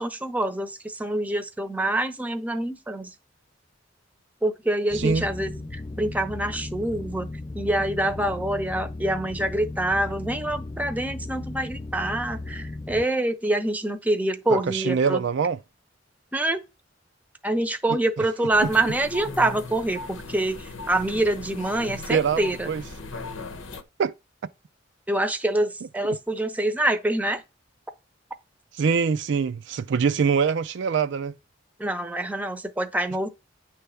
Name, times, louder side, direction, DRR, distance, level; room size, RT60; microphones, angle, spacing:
voice 1, 0.0-3.1 4.4-7.3 7.5-15.2 16.3-16.6 17.4-22.7 25.1-27.4 31.8-33.3, right 1 dB, 10° right, 0.7 m, -26 dB
sound 1, 4.9-13.1, left 2 dB, 20° left, 0.3 m, -36 dB
voice 2, 4.9-5.3 14.5-15.6 17.9-18.0 22.1-22.4 22.7-22.8 24.0-24.1 28.8-31.3, right 6 dB, 65° right, 0.4 m, -23 dB
sound 2, 18.5-23.8, left 3 dB, 90° left, 1.0 m, -38 dB
9.6 x 3.4 x 6.8 m
head